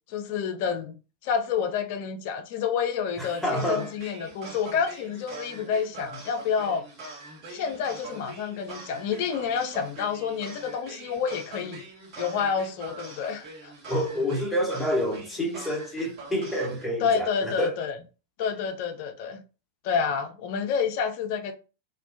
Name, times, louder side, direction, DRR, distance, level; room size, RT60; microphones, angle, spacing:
voice 1, 0.1-0.9 1.2-6.9 7.5-11.8 12.2-13.7 17.0-18.0 18.4-19.4 19.8-21.5, left 6 dB, 50° left, 0.4 m, -29 dB
voice 2, 3.2-3.9 13.9-17.8, equal, 10° left, 0.8 m, -28 dB
sound 1, 3.2-16.8, right 3 dB, 40° right, 1.2 m, -43 dB
2.5 x 2.1 x 2.5 m
figure-of-eight pair, 90°, 0 cm